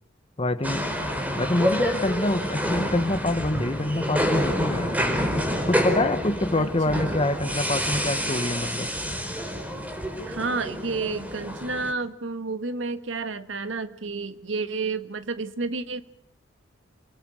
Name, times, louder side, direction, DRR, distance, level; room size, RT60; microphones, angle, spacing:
voice 1, 0.4-0.8 1.3-5.3 5.7-8.9, left 1 dB, 30° left, 10 dB, 1.3 m, -26 dB
sound 1, 0.6-11.9, equal, 10° right, 4.5 m, -28 dB
voice 2, 6.6-7.2 10.2-16.0, right 3 dB, 75° right, 11 dB, 1.5 m, -31 dB
28.5 x 24.0 x 6.4 m, 0.70 s
head